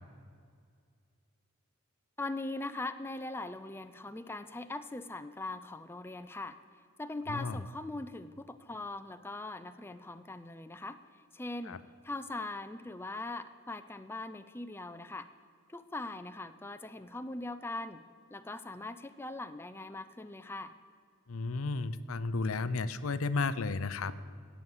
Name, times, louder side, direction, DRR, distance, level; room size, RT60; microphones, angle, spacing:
voice 1, 2.2-6.6 7.0-11.0 11.3-11.8 12.0-15.3 15.7-18.0 18.3-20.7, left 2 dB, 10° left, 10 dB, 0.4 m, -41 dB
voice 2, 7.3-7.6 11.7-11.8 21.3-24.1, left 3 dB, 80° left, 14 dB, 0.6 m, -33 dB
17.0 x 7.1 x 7.9 m, 2.2 s
head